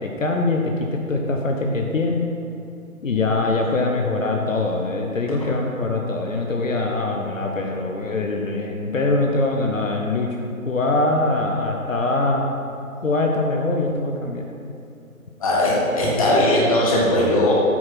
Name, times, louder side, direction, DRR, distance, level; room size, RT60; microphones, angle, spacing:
voice 1, 0.0-2.3 3.0-10.3 10.6-12.5 13.0-14.4, left 2 dB, 65° left, 2 dB, 1.0 m, -23 dB
voice 2, 15.4-17.5, left 1 dB, 25° left, -5 dB, 1.4 m, -18 dB
8.4 x 4.3 x 6.0 m, 2.5 s
figure-of-eight pair, 150°, 42 cm